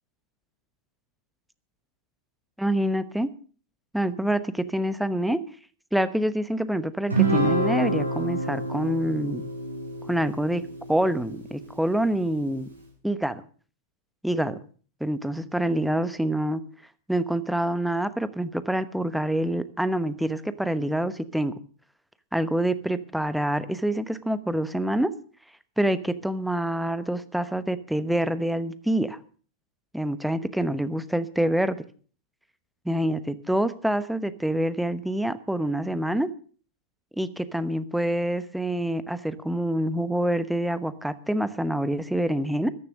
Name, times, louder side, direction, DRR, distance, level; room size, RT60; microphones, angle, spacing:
voice 1, 2.6-3.3 3.9-5.4 5.9-9.4 10.1-10.6 10.9-12.7 13.0-13.4 14.2-14.6 15.0-16.6 17.1-21.5 22.3-25.1 25.8-29.2 29.9-31.8 32.8-36.3 37.2-42.7, right 1 dB, ahead, 14 dB, 1.0 m, -26 dB
Guitar, 7.1-11.7, right 2 dB, 90° right, 7.1 m, -27 dB
14.0 x 11.0 x 6.4 m, 0.42 s
figure-of-eight pair, 95°, 0 cm